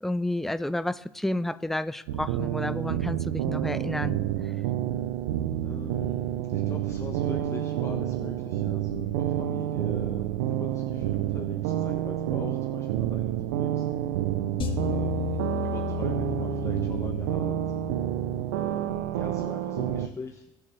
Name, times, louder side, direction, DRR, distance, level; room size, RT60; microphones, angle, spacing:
voice 1, 0.0-4.2, left 1 dB, 5° left, 14 dB, 0.5 m, -30 dB
sound 1, 2.1-20.1, right 12 dB, 90° right, 0.6 m, -29 dB
voice 2, 5.6-6.2 6.5-13.9 14.7-17.7 18.5-20.5, left 4 dB, 25° left, 3 dB, 1.3 m, -42 dB
sound 2, 14.6-18.9, left 15 dB, 50° left, 1.9 m, -35 dB
21.0 x 7.5 x 3.3 m, 0.90 s
supercardioid pair, 70°, 11 cm